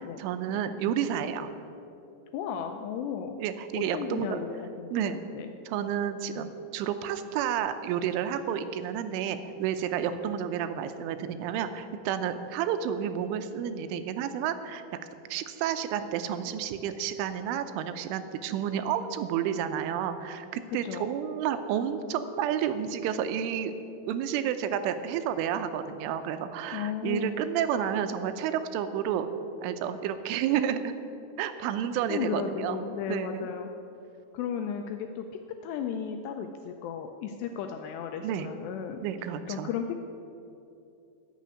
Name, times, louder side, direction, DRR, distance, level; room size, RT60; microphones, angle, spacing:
voice 1, 0.2-1.5 3.4-4.4 4.9-5.2 5.7-14.8 15.3-23.7 24.1-29.3 29.6-31.0 31.4-33.5 38.2-38.5 39.0-39.7, right 9 dB, 85° right, 10 dB, 3.2 m, -30 dB
voice 2, 2.3-3.3 3.7-5.5 10.1-10.2 20.7-21.1 26.7-27.4 32.1-33.7 34.3-35.3 35.6-39.0 39.5-40.0, left 8 dB, 85° left, 5 dB, 2.5 m, -35 dB
13.5 x 7.2 x 9.5 m, 2.7 s
omnidirectional pair, 5.5 m